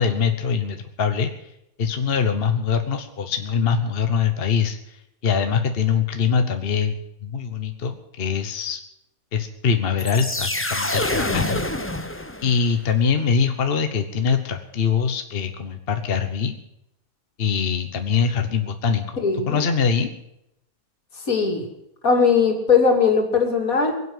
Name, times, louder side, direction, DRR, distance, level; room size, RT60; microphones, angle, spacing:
voice 1, 0.0-1.5 1.8-8.8 9.3-11.6 12.4-16.6 17.4-19.2 19.5-20.1, left 6 dB, 45° left, 7 dB, 1.2 m, -23 dB
sound 1, 10.0-12.8, left 1 dB, 10° left, 0.9 m, -26 dB
voice 2, 19.2-19.6 21.3-21.7 22.0-23.9, left 5 dB, 75° left, 2 dB, 3.2 m, -19 dB
22.0 x 8.3 x 7.9 m, 0.82 s
omnidirectional pair, 1.5 m